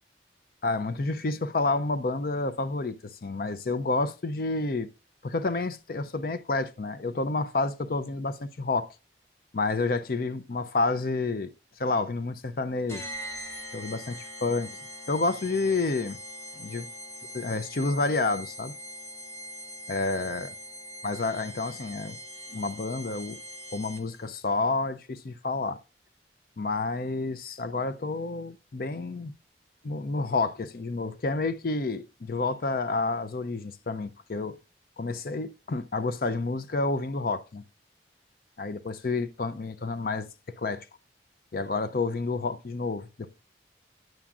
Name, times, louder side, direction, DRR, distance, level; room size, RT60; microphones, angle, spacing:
voice 1, 0.6-4.9 5.2-8.9 9.5-11.5 11.8-13.1 13.7-14.7 15.1-16.2 16.6-16.9 17.3-18.7 19.9-20.5 21.0-22.2 22.5-23.4 23.7-25.8 26.6-29.3 29.8-34.6 35.0-37.6 38.6-40.3 40.6-40.8 41.5-43.3, left 3 dB, 55° left, 0.5 m, -29 dB
sound 1, 12.9-24.3, equal, 15° left, 0.9 m, -42 dB
9.1 x 7.2 x 2.4 m
head